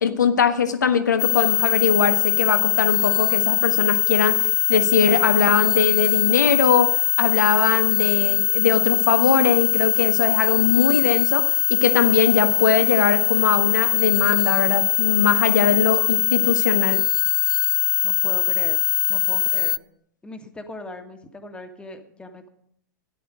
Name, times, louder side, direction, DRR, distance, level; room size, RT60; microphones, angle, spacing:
voice 1, 0.0-17.0, left 6 dB, 70° left, 9 dB, 1.4 m, -21 dB
sound 1, 1.2-19.8, left 13 dB, 30° left, 0.5 m, -21 dB
voice 2, 18.0-18.8 19.1-19.8 20.2-22.5, left 2 dB, 10° left, 6 dB, 1.7 m, -39 dB
13.5 x 11.0 x 5.1 m, 0.68 s
figure-of-eight pair, 100°, 10 cm